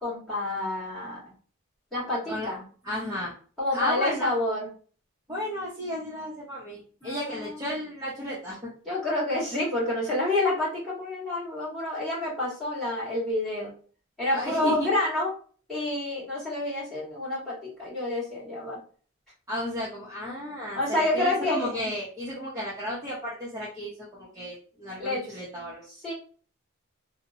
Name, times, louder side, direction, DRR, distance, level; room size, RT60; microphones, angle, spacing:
voice 1, 0.0-1.3 1.9-2.6 3.6-4.7 7.0-7.6 8.8-13.7 14.2-15.3 15.7-18.8 20.7-21.7 25.0-25.4 26.0-26.1, left 1 dB, ahead, -7 dB, 1.5 m, -28 dB
voice 2, 2.8-3.3 3.7-4.4 5.3-8.7 14.3-14.9 19.5-25.8, left 1 dB, 15° right, -7 dB, 0.6 m, -33 dB
2.8 x 2.0 x 2.7 m, 0.42 s
head